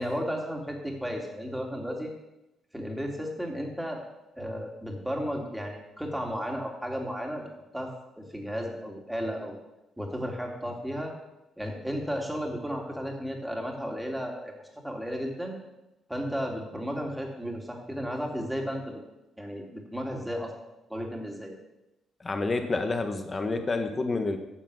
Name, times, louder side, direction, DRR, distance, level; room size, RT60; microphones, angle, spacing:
voice 1, 0.0-2.1 2.7-4.0 4.4-7.4 7.7-7.9 8.2-9.5 10.0-11.1 11.6-14.5 14.8-15.6 16.1-19.0 19.4-20.5 20.9-21.5, equal, 5° right, 1 dB, 2.6 m, -33 dB
voice 2, 22.2-24.4, left 3 dB, 30° left, 6 dB, 1.4 m, -28 dB
10.0 x 7.2 x 6.4 m, 0.95 s
cardioid pair, 90°, 0 cm